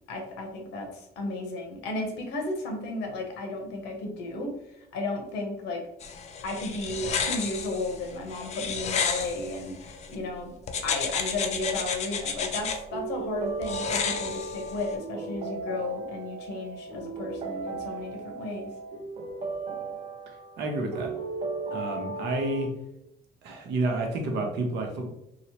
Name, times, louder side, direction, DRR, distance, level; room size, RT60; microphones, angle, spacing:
voice 1, 0.1-5.9 6.4-10.5 10.8-18.7, left 2 dB, 85° left, 2 dB, 0.7 m, -34 dB
sound 1, 6.0-10.2 10.7-12.8 13.6-14.9, left 6 dB, 40° left, 0.4 m, -32 dB
sound 2, 12.4-22.7, right 3 dB, 35° right, 0.5 m, -36 dB
voice 2, 20.6-21.1 21.7-22.7 23.4-25.1, right 2 dB, 80° right, 3 dB, 0.7 m, -29 dB
2.9 x 2.0 x 2.8 m, 0.83 s
cardioid pair, 110°, 17 cm